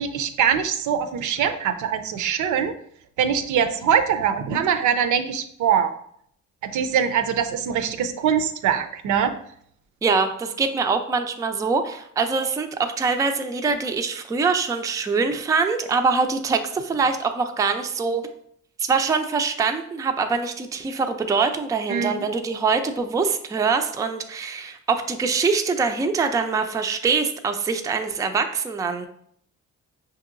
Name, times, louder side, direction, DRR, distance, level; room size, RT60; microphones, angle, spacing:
voice 1, 0.0-2.7 3.2-5.9 6.7-9.3 21.9-22.2, right 8 dB, 75° right, 8 dB, 0.5 m, -22 dB
voice 2, 10.0-18.2 18.8-29.1, right 4 dB, 10° right, 6 dB, 0.3 m, -24 dB
5.2 x 2.8 x 2.5 m, 0.67 s
cardioid pair, 90°, 30 cm